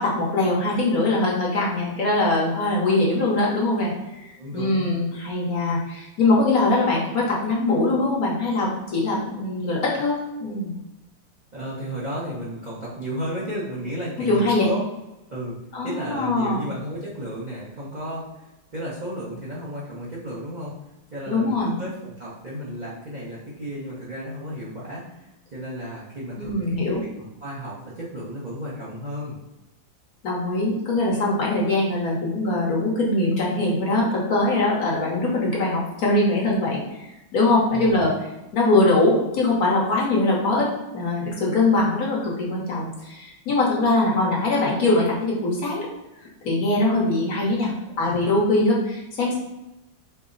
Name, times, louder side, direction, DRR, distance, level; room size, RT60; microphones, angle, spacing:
voice 1, 0.0-10.7 14.3-14.7 15.7-16.7 21.3-21.8 26.4-27.0 30.2-40.7 40.9-45.9 46.4-49.4, left 2 dB, 55° left, -4 dB, 1.2 m, -22 dB
voice 2, 4.4-5.0 11.5-14.8 15.3-15.6 15.8-18.5 18.7-20.7 21.1-29.4 37.7-38.2 48.1-48.3, equal, 50° right, -8 dB, 0.5 m, -33 dB
4.6 x 2.0 x 3.8 m, 0.96 s
omnidirectional pair, 2.1 m